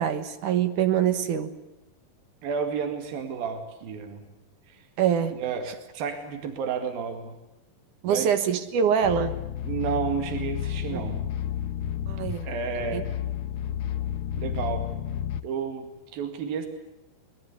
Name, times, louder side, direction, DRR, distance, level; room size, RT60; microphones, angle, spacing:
voice 1, 0.0-1.5 5.0-5.4 8.0-9.4 10.9-11.0 12.1-12.5 12.9-13.0, right 8 dB, 65° right, 9 dB, 2.7 m, -24 dB
voice 2, 2.4-4.2 4.7-4.8 5.3-7.4 8.0-8.3 9.6-11.2 12.4-13.1 14.4-14.8 15.4-16.7, right 6 dB, 85° right, 6 dB, 4.0 m, -31 dB
sound 1, 9.0-15.4, left 10 dB, 90° left, 1.2 m, -31 dB
24.5 x 21.5 x 8.3 m, 0.94 s
omnidirectional pair, 4.1 m